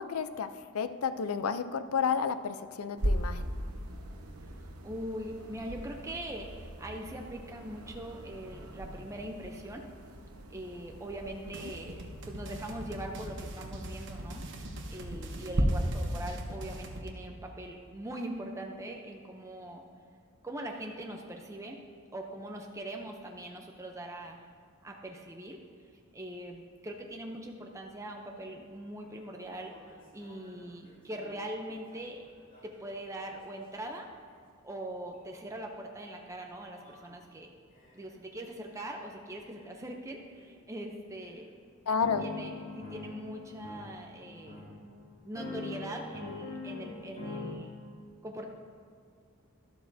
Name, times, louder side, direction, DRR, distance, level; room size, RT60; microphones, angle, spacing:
voice 1, 0.0-3.4 41.9-42.3, left 6 dB, 80° left, 12 dB, 0.5 m, -31 dB
sound 1, 3.0-15.6, right 1 dB, 90° right, 1.0 m, -39 dB
voice 2, 4.8-9.8 10.5-12.0 12.2-14.4 14.9-19.8 20.4-21.8 22.1-24.4 24.8-25.6 26.1-29.7 30.1-32.2 32.6-34.1 34.6-37.5 37.9-41.5 42.2-44.6 45.3-47.7 48.2-48.5, right 1 dB, 15° right, 1 dB, 0.6 m, -41 dB
sound 2, 11.5-17.1, right 1 dB, 60° right, 1.0 m, -42 dB
sound 3, 29.0-29.1 29.5-33.9 35.2-35.4 36.0-36.2 36.7-37.1 37.7-38.1 38.7-39.0 39.5-39.7 40.4-40.5 41.2-41.3 42.0-47.5, left 3 dB, 40° left, 2.4 m, -44 dB
12.5 x 12.0 x 2.7 m, 2.2 s
head